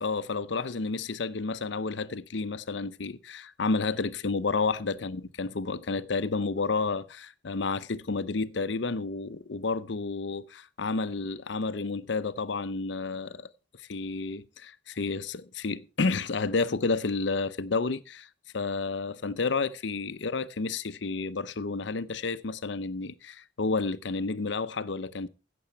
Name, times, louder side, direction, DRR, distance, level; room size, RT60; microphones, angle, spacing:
voice 1, 0.0-13.5 13.8-18.3 18.5-25.3, left 4 dB, 60° left, 0.7 m, -31 dB
15.5 x 6.9 x 4.5 m
head